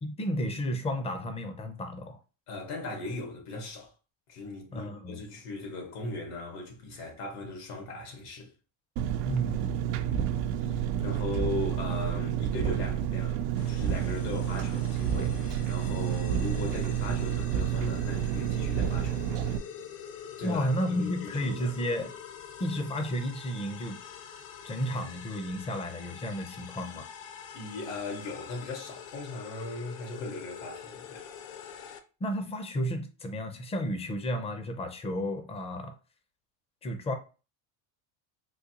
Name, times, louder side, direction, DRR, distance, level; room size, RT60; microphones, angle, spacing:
voice 1, 0.0-2.2 4.7-5.2 9.2-9.9 20.4-22.1 22.6-24.0 24.6-27.1 32.2-35.9 36.8-37.1, equal, 15° left, 0.4 m, -32 dB
voice 2, 2.5-3.9 4.3-8.5 10.1-10.3 10.6-19.3 20.4-20.7 21.0-21.7 27.5-31.3, left 2 dB, 80° left, 1.6 m, -38 dB
Engine, 9.0-19.6, right 10 dB, 85° right, 0.6 m, -30 dB
sound 1, 13.6-32.0, left 8 dB, 50° left, 0.6 m, -45 dB
3.9 x 2.4 x 2.8 m
supercardioid pair, 120°, 46 cm